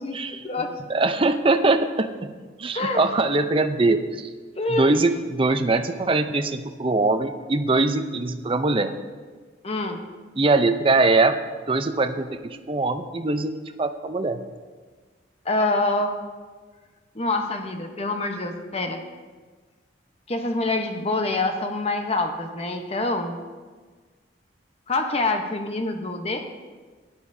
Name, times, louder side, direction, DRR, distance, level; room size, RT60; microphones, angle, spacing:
voice 1, 0.9-2.3 2.6-4.3 4.7-8.9 10.4-11.4 11.7-14.4, right 3 dB, 30° right, 8 dB, 0.5 m, -22 dB
voice 2, 4.6-4.9 9.6-10.0 15.4-16.2 17.1-19.0 20.3-23.4 24.9-26.5, left 2 dB, 35° left, 5 dB, 0.9 m, -26 dB
16.0 x 10.5 x 2.7 m, 1.4 s
head